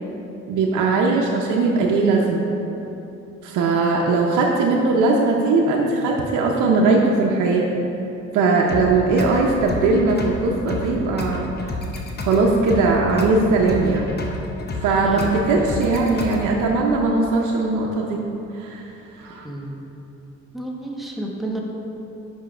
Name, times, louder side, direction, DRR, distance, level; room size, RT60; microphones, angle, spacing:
voice 1, 0.5-2.5 3.4-7.7 8.3-11.5 12.2-14.1 14.8-18.2 18.5-18.8 19.2-19.4, right 3 dB, 85° right, -1 dB, 0.7 m, -19 dB
sound 1, 8.7-16.7, left 2 dB, 35° left, 0.8 m, -31 dB
voice 2, 19.4-19.8 20.5-21.6, right 1 dB, ahead, -2 dB, 1.0 m, -30 dB
5.6 x 5.1 x 5.0 m, 2.9 s
cardioid pair, 90°, 30 cm